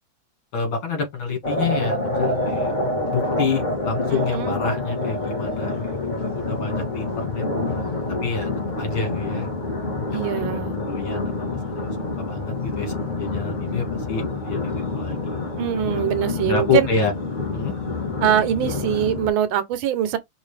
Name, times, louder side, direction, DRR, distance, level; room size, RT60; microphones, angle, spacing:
voice 1, 0.5-2.7 3.1-6.1 6.4-7.5 8.2-8.5 8.8-9.5 10.1-11.9 12.2-15.2 16.5-17.1 17.5-17.7, left 5 dB, 85° left, 2.7 m, -28 dB
sound 1, 1.4-19.3, left 2 dB, 30° left, 1.1 m, -27 dB
voice 2, 4.1-4.6 10.1-10.8 15.6-16.9 18.2-20.2, right 10 dB, 90° right, 1.6 m, -23 dB
5.4 x 2.6 x 3.3 m
omnidirectional pair, 2.1 m